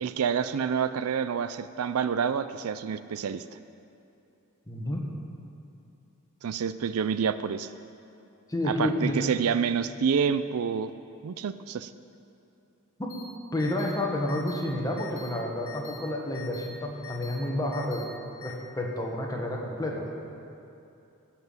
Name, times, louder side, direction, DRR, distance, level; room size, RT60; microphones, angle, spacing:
voice 1, 0.0-3.4 6.4-7.7 8.6-10.9 11.2-11.9, right 7 dB, 75° right, 13 dB, 0.4 m, -28 dB
voice 2, 4.7-5.0 8.5-9.3 13.0-13.1 13.5-18.1 18.4-20.1, left 1 dB, 15° left, -1 dB, 1.5 m, -30 dB
sound 1, 13.1-13.2 13.6-13.9 14.3-14.6 15.0-15.3 15.7-16.0 16.3-16.7 17.0-17.4 17.7-18.0 18.4-18.5, left 9 dB, 65° left, 1.8 m, -44 dB
15.0 x 5.9 x 7.2 m, 2.7 s
head